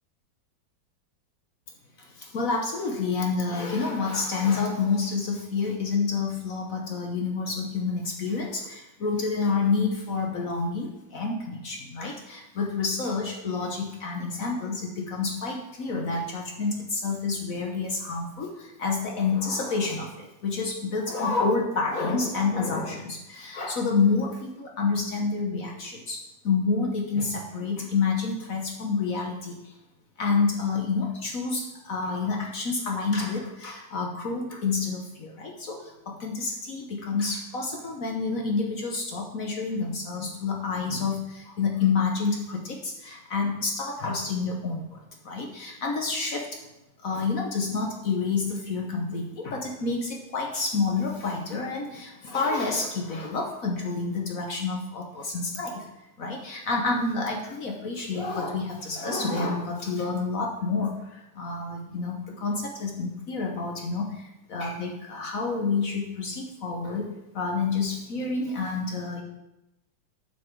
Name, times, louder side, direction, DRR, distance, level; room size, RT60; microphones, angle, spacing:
voice 1, 2.0-29.7 30.2-46.6 47.0-55.9 56.2-67.1 67.3-69.2, left 4 dB, 50° left, 0 dB, 1.3 m, -28 dB
7.4 x 7.0 x 4.6 m, 0.91 s
omnidirectional pair, 2.1 m